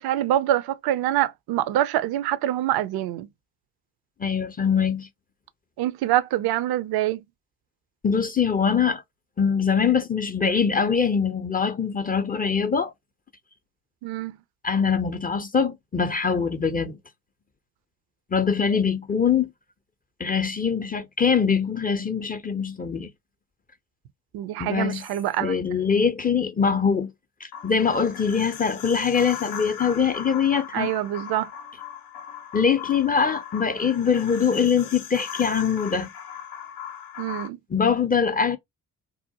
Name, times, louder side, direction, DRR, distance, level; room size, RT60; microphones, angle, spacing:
voice 1, 0.0-3.3 5.8-7.2 14.0-14.4 24.3-25.5 30.7-31.5 37.2-37.6, right 13 dB, 60° right, 0.5 m, -25 dB
voice 2, 4.2-5.1 8.0-9.0 9.4-12.9 14.6-17.0 18.3-19.5 20.2-23.1 24.6-25.0 25.4-27.1 27.4-30.9 32.5-36.1 37.7-38.6, left 6 dB, 20° left, 0.4 m, -23 dB
sound 1, 27.5-37.5, left 8 dB, 85° left, 0.6 m, -38 dB
2.8 x 2.0 x 2.7 m
hypercardioid pair, 45°, 44 cm